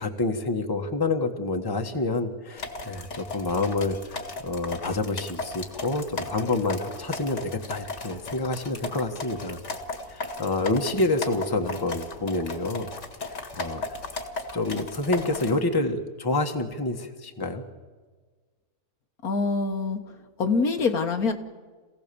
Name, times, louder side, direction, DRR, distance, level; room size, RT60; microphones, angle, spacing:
voice 1, 0.0-9.6 10.1-12.9 13.2-14.0 14.5-17.6, left 2 dB, 15° left, 4 dB, 1.4 m, -28 dB
sound 1, 2.6-15.6, left 3 dB, 50° left, 2.0 m, -36 dB
voice 2, 19.2-20.0 20.4-21.3, left 4 dB, 75° left, 5 dB, 1.9 m, -24 dB
27.0 x 16.5 x 7.0 m, 1.4 s
omnidirectional pair, 1.6 m